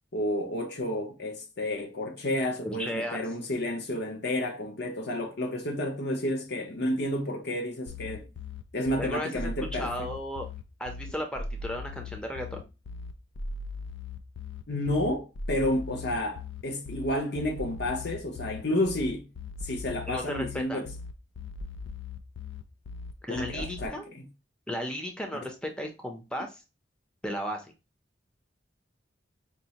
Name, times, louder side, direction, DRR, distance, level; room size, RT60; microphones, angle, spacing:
voice 1, 0.1-8.3 8.7-10.1 14.7-19.3 19.6-20.9 23.3-24.3 25.3-25.4, left 1 dB, 60° left, 0.8 m, -31 dB
voice 2, 2.6-3.2 9.0-10.5 10.8-12.6 20.0-20.9 23.2-24.1 24.7-26.6 27.2-27.6, equal, 5° left, 0.6 m, -35 dB
sound 1, 7.9-23.9, left 3 dB, 80° left, 0.4 m, -39 dB
5.1 x 2.1 x 2.8 m
head